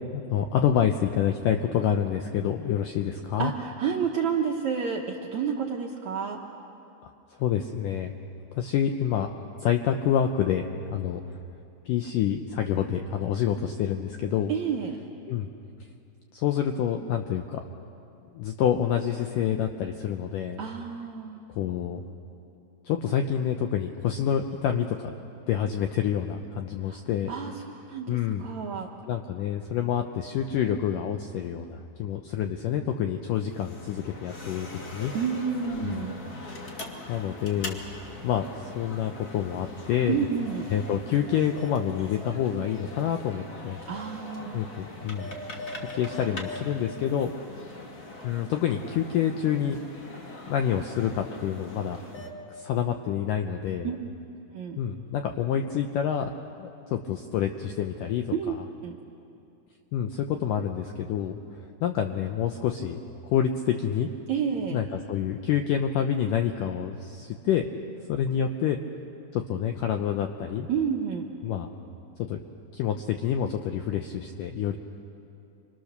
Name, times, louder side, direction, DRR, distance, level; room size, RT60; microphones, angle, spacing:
voice 1, 0.1-3.5 7.4-8.1 8.6-9.3 9.6-11.4 11.9-14.5 15.3-15.5 16.3-17.6 18.3-20.6 21.6-22.0 22.9-25.1 25.5-27.3 28.1-28.5 29.1-35.1 35.8-36.1 37.1-37.9 38.2-40.2 40.7-43.8 44.5-45.4 45.8-47.3 48.2-49.8 50.5-52.0 52.5-53.9 54.8-56.3 56.6-58.6 59.9-63.0 63.3-64.1 64.7-67.6 68.1-68.8 69.3-70.7 71.4-71.7 72.2-72.4 72.7-74.8, left 9 dB, 80° left, 5 dB, 1.9 m, -27 dB
voice 2, 3.4-6.4 14.5-15.0 20.6-21.4 26.8-27.0 27.3-28.9 35.1-36.2 40.1-40.7 43.9-44.6 53.8-54.0 54.5-54.8 58.3-58.5 58.8-59.0 64.3-64.8 70.7-71.3, right 7 dB, 70° right, 0 dB, 1.7 m, -30 dB
sound 1, 33.4-52.3, left 2 dB, 40° left, 1.4 m, -41 dB
28.5 x 24.5 x 6.7 m, 2.7 s
omnidirectional pair, 4.8 m